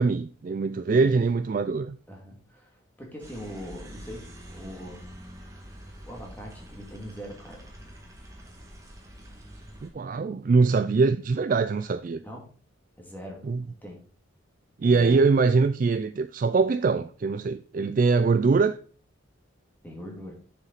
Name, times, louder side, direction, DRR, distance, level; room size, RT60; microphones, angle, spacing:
voice 1, 0.0-2.0 9.8-12.2 13.4-13.6 14.8-18.8, right 4 dB, 40° right, 0.3 m, -23 dB
voice 2, 2.1-5.1 6.1-7.8 12.2-12.5 13.0-13.4 13.7-14.0 14.8-15.3 19.8-20.3, equal, 10° left, 2.3 m, -41 dB
sound 1, 3.2-9.9, equal, 15° right, 1.7 m, -45 dB
7.1 x 7.0 x 4.0 m
head